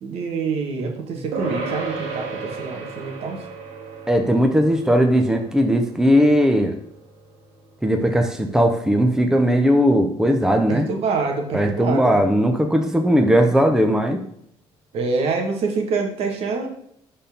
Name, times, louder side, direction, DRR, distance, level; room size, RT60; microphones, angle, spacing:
voice 1, 0.0-3.4 10.7-12.2 14.9-16.7, right 4 dB, 70° right, 3 dB, 1.7 m, -26 dB
sound 1, 1.3-11.0, right 3 dB, 90° right, 2.0 m, -36 dB
voice 2, 4.1-6.7 7.8-10.9 11.5-14.2, equal, 5° right, 4 dB, 1.0 m, -18 dB
11.5 x 4.3 x 3.6 m, 0.70 s
cardioid pair, 85°, 11 cm